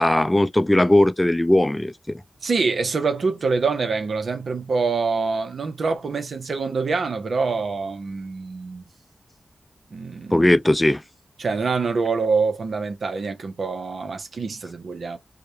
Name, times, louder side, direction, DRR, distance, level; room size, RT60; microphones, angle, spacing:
voice 1, 0.0-1.9 10.3-11.0, left 1 dB, 15° left, 0.3 m, -18 dB
voice 2, 2.4-8.8 9.9-10.5 11.4-15.2, right 4 dB, 75° right, 0.5 m, -25 dB
2.3 x 2.0 x 2.8 m
cardioid pair, 45°, 0 cm